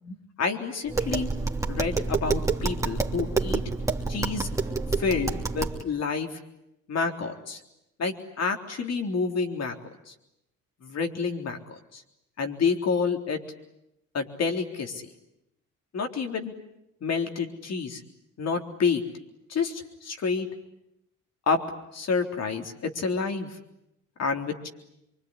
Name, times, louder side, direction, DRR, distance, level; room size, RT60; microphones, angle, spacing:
voice 1, 0.0-1.3 1.7-3.6 4.1-4.5 5.0-6.4 6.9-7.6 8.0-9.8 10.1-10.2 10.8-11.6 11.9-12.0 12.4-13.4 14.1-15.1 15.9-16.5 17.0-18.0 18.4-19.0 19.5-20.5 21.5-21.6 21.9-23.6 24.2-24.7, left 5 dB, 55° left, 4 dB, 3.8 m, -28 dB
Tap, 0.9-5.8, right 3 dB, 10° right, 3.0 m, -28 dB
25.0 x 24.5 x 10.0 m, 0.86 s
cardioid pair, 90°, 30 cm